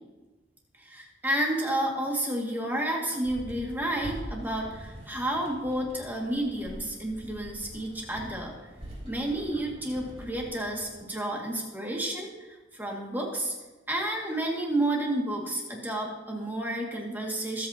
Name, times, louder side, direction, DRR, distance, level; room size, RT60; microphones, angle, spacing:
voice 1, 0.8-8.5 9.0-13.5 13.9-17.7, right 1 dB, 10° right, -1 dB, 2.1 m, -31 dB
sound 1, 3.2-11.0, equal, 35° right, 3.7 m, -44 dB
25.0 x 8.4 x 2.9 m, 1.2 s
head